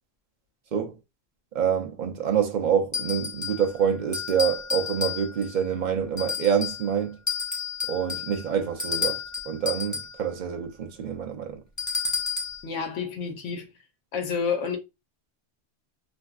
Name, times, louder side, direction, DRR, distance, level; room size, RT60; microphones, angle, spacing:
voice 1, 1.5-7.2 7.9-11.6, right 8 dB, 55° right, 0.5 m, -26 dB
sound 1, 2.9-3.7 4.1-5.6 6.2-6.9 7.3-10.2 11.8-12.6, left 5 dB, 20° left, 0.6 m, -31 dB
voice 2, 12.6-13.7 14.1-14.8, left 6 dB, 90° left, 1.0 m, -29 dB
3.4 x 2.5 x 2.3 m
omnidirectional pair, 1.2 m